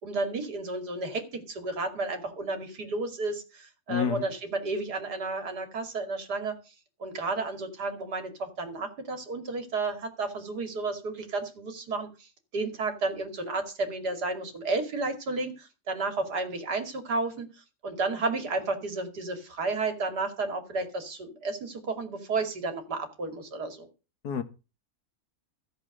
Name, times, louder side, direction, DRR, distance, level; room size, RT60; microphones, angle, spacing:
voice 1, 0.0-6.6 7.0-17.5 17.8-23.9, right 3 dB, 90° right, 3.0 m, -32 dB
voice 2, 3.9-4.3 24.2-24.4, left 8 dB, 80° left, 1.9 m, -28 dB
14.5 x 7.6 x 6.5 m
omnidirectional pair, 1.7 m